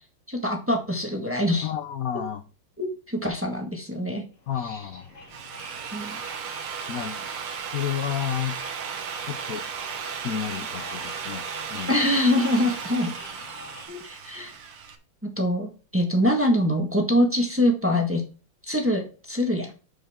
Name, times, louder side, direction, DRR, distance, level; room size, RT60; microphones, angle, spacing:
voice 1, 0.3-1.7 2.8-4.2 5.9-6.2 11.9-13.1 13.9-14.5 15.2-18.2 18.7-19.7, left 1 dB, 5° right, 1 dB, 1.2 m, -24 dB
voice 2, 1.6-2.4 4.5-5.1 6.9-7.3 7.7-8.6 9.2-9.7 10.2-11.9, left 9 dB, 75° left, 9 dB, 0.8 m, -31 dB
sound 1, 4.3-13.9, left 2 dB, 55° left, 3.4 m, -46 dB
Drill, 5.1-15.0, right 7 dB, 85° right, 2.1 m, -35 dB
12.5 x 5.4 x 3.6 m, 0.35 s
omnidirectional pair, 2.3 m